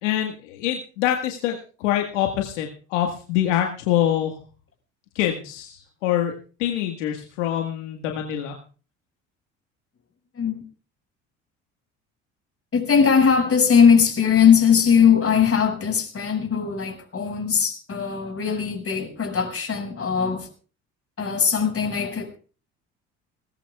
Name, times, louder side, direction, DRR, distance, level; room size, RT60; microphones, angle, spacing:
voice 1, 0.0-4.4 5.2-6.3 6.6-8.6, left 11 dB, 80° left, 2 dB, 1.8 m, -25 dB
voice 2, 12.7-20.5 21.2-22.4, left 7 dB, 40° left, 5 dB, 6.0 m, -20 dB
20.5 x 19.5 x 2.4 m, 0.38 s
hypercardioid pair, 60°, 36 cm